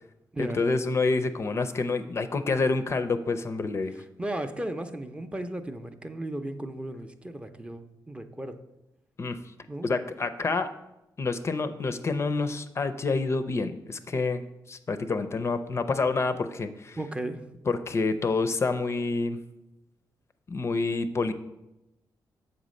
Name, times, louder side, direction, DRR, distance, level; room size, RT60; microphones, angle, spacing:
voice 1, 0.4-3.9 9.2-9.4 9.8-10.7 11.2-17.0 17.7-19.4 20.5-21.3, left 3 dB, 35° left, 10 dB, 0.5 m, -28 dB
voice 2, 4.2-8.6 9.7-9.9 17.0-17.4, right 1 dB, 15° right, 7 dB, 0.5 m, -35 dB
7.5 x 4.1 x 6.4 m, 0.92 s
cardioid pair, 120°, 8 cm